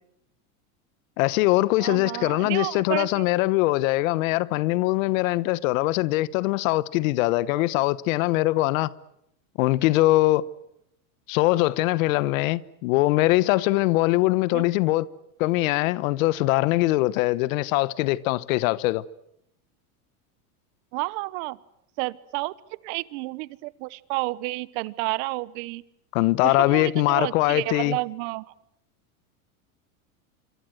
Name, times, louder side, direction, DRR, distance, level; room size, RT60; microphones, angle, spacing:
voice 1, 1.2-8.9 9.6-10.5 11.3-15.1 15.4-19.0 26.1-28.0, left 18 dB, 65° left, 1.2 m, -22 dB
voice 2, 1.8-3.3 14.5-14.7 20.9-21.6 22.0-22.5 22.8-25.8 26.4-28.4, right 23 dB, 60° right, 1.1 m, -30 dB
26.5 x 25.5 x 7.9 m
supercardioid pair, 130°, 43 cm